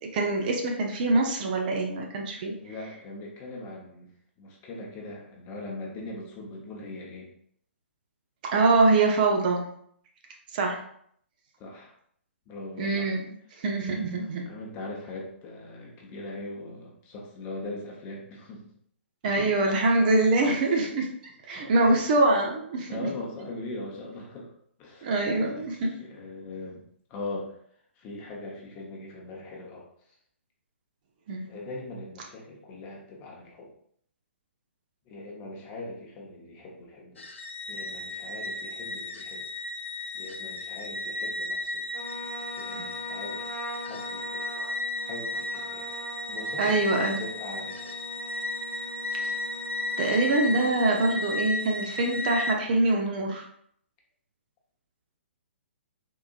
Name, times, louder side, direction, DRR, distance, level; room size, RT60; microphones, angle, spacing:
voice 1, 0.0-2.5 8.5-9.7 10.5-10.8 12.8-13.2 13.6-14.4 19.2-21.1 21.5-23.1 25.0-25.9 31.3-31.5 42.7-42.8 46.6-47.2 49.2-49.3 50.0-53.4, right 2 dB, 45° right, 1 dB, 0.6 m, -24 dB
voice 2, 2.5-4.1 4.4-7.3 11.6-11.9 12.5-13.1 14.4-18.6 19.6-19.7 20.4-20.5 21.5-22.1 22.9-24.5 24.8-25.1 25.4-26.8 27.1-27.6 28.0-29.9 31.5-33.7 35.1-37.2 37.7-39.5 40.1-41.8 42.6-44.4 45.0-45.9 46.3-47.9, left 2 dB, 25° left, -2 dB, 0.9 m, -40 dB
sound 1, 37.2-52.5, left 2 dB, 75° left, 0.5 m, -34 dB
Trumpet, 41.9-51.3, equal, 65° right, 1.2 m, -42 dB
3.8 x 2.7 x 2.4 m, 0.66 s
figure-of-eight pair, 125°, 7 cm